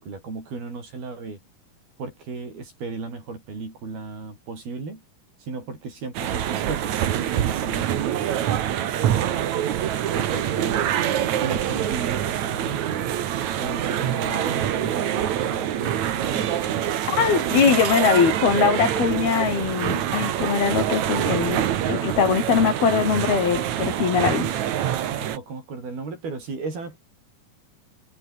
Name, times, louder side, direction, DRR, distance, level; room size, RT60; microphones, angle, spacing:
voice 1, 0.0-1.4 2.0-5.0 5.4-8.5 10.1-11.1 11.4-13.1 13.6-16.5 24.3-24.6 25.2-27.0, right 4 dB, 85° right, 10.0 m, -35 dB
sound 1, 6.1-25.4, right 11 dB, 60° right, 2.5 m, -25 dB
voice 2, 17.1-24.4, left 6 dB, 85° left, 6.2 m, -21 dB
omnidirectional pair, 4.3 m